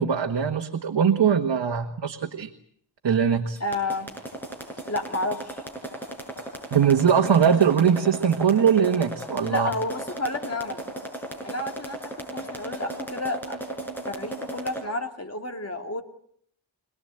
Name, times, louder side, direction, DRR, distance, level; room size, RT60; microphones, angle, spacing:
voice 1, 0.0-2.5 3.0-3.6 6.7-9.7, right 7 dB, 65° right, 5 dB, 1.6 m, -21 dB
voice 2, 3.6-4.1 4.9-5.6 9.4-10.8 11.4-12.0 12.3-13.6 14.1-16.0, left 2 dB, 35° left, 5 dB, 2.4 m, -30 dB
sound 1, 3.6-14.8, right 1 dB, 5° left, 6.9 m, -35 dB
26.0 x 19.5 x 8.9 m, 0.65 s
wide cardioid pair, 130°, 46 cm